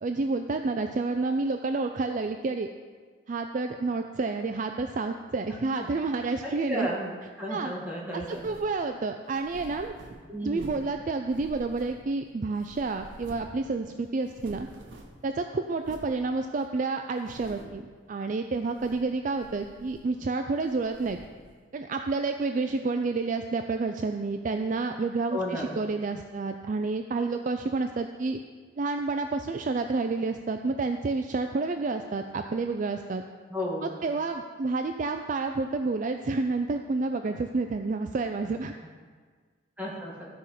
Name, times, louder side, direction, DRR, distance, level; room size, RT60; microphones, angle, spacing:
voice 1, 0.0-2.7 3.3-6.9 7.5-7.7 8.1-9.9 10.4-14.7 15.2-21.2 21.7-28.4 28.8-33.2 33.8-38.7, right 3 dB, 40° right, 6 dB, 0.4 m, -29 dB
voice 2, 5.5-5.9 6.4-7.1 7.4-8.4 10.3-10.8 25.3-25.8 33.5-34.0 39.8-40.3, equal, 10° right, -5 dB, 2.0 m, -34 dB
sound 1, 8.2-8.8 9.3-11.0 11.3-12.3 12.6-13.6 13.9-14.0 14.2-15.3 15.8-16.2 16.6-16.7 17.2-17.8 18.6-19.1 19.4-20.3 20.6-21.4, right 1 dB, 70° right, 1.3 m, -48 dB
13.5 x 4.9 x 5.8 m, 1.5 s
head